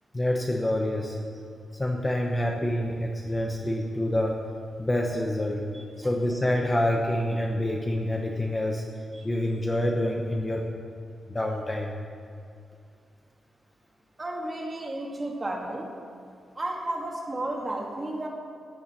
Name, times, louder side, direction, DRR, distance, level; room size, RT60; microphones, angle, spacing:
voice 1, 0.1-1.2 1.8-4.4 4.8-5.7 6.0-8.8 9.2-10.7 11.3-11.9, left 1 dB, 15° left, 1 dB, 0.9 m, -27 dB
voice 2, 14.2-15.9 16.6-18.3, right 1 dB, 20° right, -1 dB, 2.2 m, -33 dB
15.0 x 7.1 x 10.0 m, 2.3 s
wide cardioid pair, 175°, 0 cm